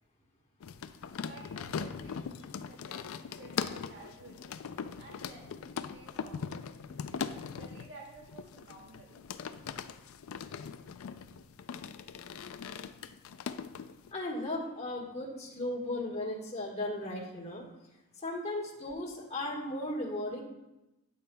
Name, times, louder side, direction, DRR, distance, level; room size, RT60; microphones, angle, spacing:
sound 1, 0.6-14.1, left 6 dB, 70° left, 0.3 m, -40 dB
voice 1, 1.2-2.1 2.6-4.5 5.0-6.4 6.9-7.3 7.5-9.2, right 3 dB, 50° right, -1 dB, 1.5 m, -53 dB
voice 2, 14.1-17.6 18.2-20.4, left 1 dB, 30° left, -2 dB, 1.4 m, -36 dB
9.2 x 7.0 x 2.2 m, 0.96 s
head